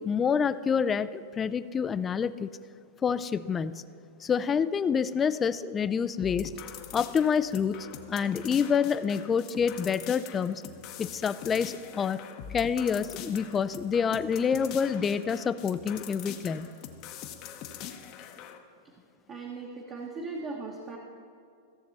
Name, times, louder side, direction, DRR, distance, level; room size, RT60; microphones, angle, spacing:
voice 1, 0.0-2.5 3.0-3.8 4.2-6.5 6.9-7.8 8.1-10.6 11.0-12.2 12.5-16.7, left 6 dB, 20° left, 14 dB, 0.3 m, -27 dB
sound 1, 6.2-18.6, left 9 dB, 40° left, 0.8 m, -43 dB
voice 2, 19.3-21.0, right 3 dB, 30° right, 0 dB, 1.1 m, -38 dB
15.5 x 6.7 x 4.1 m, 2.2 s
supercardioid pair, 145°, 0 cm